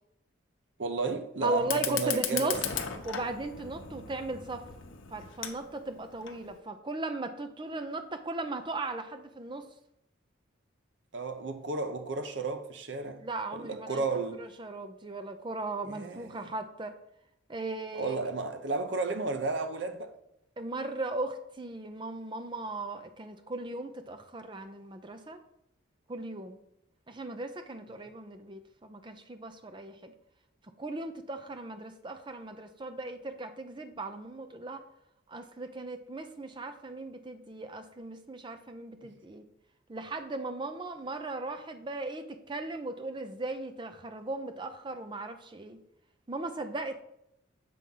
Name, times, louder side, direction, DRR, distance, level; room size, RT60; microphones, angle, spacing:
voice 1, 0.8-2.6 11.1-13.2 13.5-14.4 15.8-16.5 17.9-20.1 39.0-39.1, right 3 dB, 60° right, 0.7 m, -33 dB
voice 2, 1.4-2.6 3.0-4.6 5.1-9.7 13.2-14.0 14.4-17.0 17.5-18.2 20.6-25.4 26.1-26.6 27.1-30.1 30.8-34.8 35.3-39.4 39.9-45.8 46.3-47.0, right 2 dB, 25° right, 0.6 m, -37 dB
Fire, 1.6-6.6, left 8 dB, 80° left, 0.8 m, -37 dB
7.6 x 3.5 x 5.4 m
head